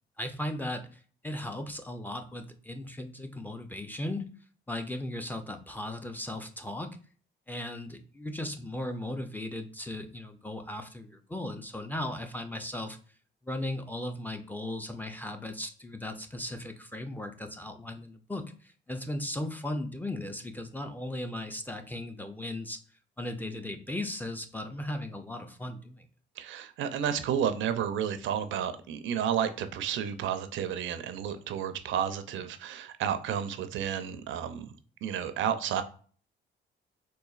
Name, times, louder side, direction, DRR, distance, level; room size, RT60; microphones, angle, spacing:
voice 1, 0.2-4.3 4.7-7.0 7.5-13.0 13.4-22.8 23.2-26.1, left 1 dB, 10° left, 6 dB, 0.4 m, -37 dB
voice 2, 26.4-34.7 35.0-35.8, right 8 dB, 75° right, 11 dB, 0.4 m, -31 dB
3.9 x 2.6 x 2.3 m, 0.43 s
cardioid pair, 90°, 20 cm